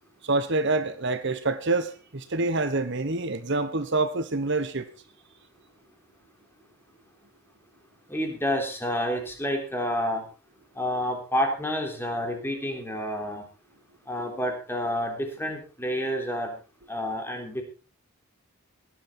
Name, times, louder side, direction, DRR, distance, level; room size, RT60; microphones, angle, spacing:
voice 1, 0.2-4.9, right 3 dB, 55° right, 1.2 m, -26 dB
voice 2, 8.1-10.2 10.8-13.4 14.1-16.5 16.9-17.6, equal, 10° left, 3.6 m, -29 dB
17.5 x 11.5 x 4.4 m
head